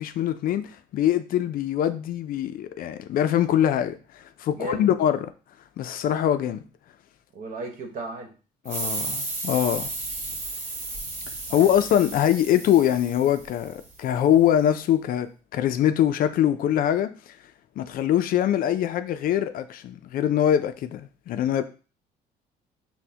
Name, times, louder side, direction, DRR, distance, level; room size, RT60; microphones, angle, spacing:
voice 1, 0.0-4.0 4.4-5.2 5.8-6.6 8.7-9.9 11.5-17.1 17.8-21.6, left 10 dB, 60° left, 0.4 m, -23 dB
voice 2, 4.5-4.9 7.3-8.3 11.5-11.7, right 2 dB, 60° right, 1.1 m, -35 dB
sound 1, 8.7-14.0, right 2 dB, 40° right, 1.3 m, -34 dB
6.0 x 2.1 x 2.7 m
cardioid pair, 110°, 17 cm